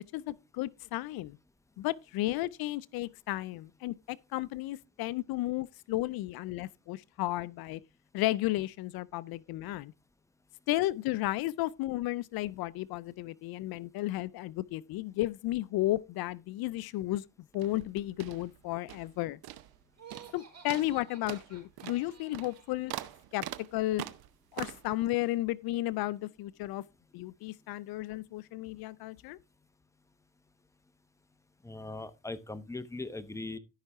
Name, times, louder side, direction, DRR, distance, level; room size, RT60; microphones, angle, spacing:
voice 1, 0.1-1.4 1.8-7.8 8.1-9.9 10.7-17.2 17.5-19.4 20.3-22.9 23.3-23.4 23.7-24.0 24.5-26.8 27.1-29.4, left 16 dB, 80° left, 0.5 m, -33 dB
sound 1, 17.5-19.2 19.4-19.8 20.1-20.4 20.7-24.9, right 13 dB, 80° right, 0.8 m, -43 dB
Laughter, 19.9-22.8, right 6 dB, 45° right, 4.4 m, -53 dB
voice 2, 31.6-33.6, left 2 dB, 10° left, 0.9 m, -40 dB
13.0 x 5.7 x 3.5 m
cardioid pair, 80°, 36 cm